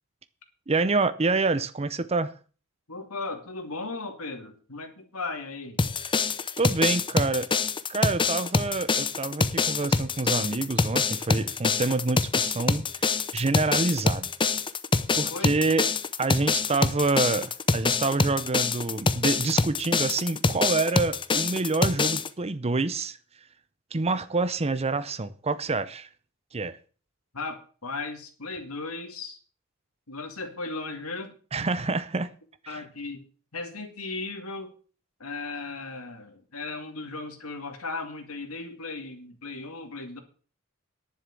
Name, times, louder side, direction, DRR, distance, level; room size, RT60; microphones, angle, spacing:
voice 1, 0.7-2.3 6.0-6.1 6.6-7.5 7.9-14.3 15.2-15.9 16.2-23.2 23.9-26.1 26.5-26.8 31.5-32.3 32.6-32.8, right 3 dB, 30° right, 0.7 m, -27 dB
voice 2, 2.9-5.8 15.3-15.6 27.3-29.4 30.1-31.3 32.7-33.2 33.5-34.7 35.2-40.2, left 3 dB, 90° left, 2.4 m, -36 dB
sound 1, 5.8-22.3, left 4 dB, 25° left, 0.6 m, -25 dB
11.0 x 6.9 x 7.6 m
head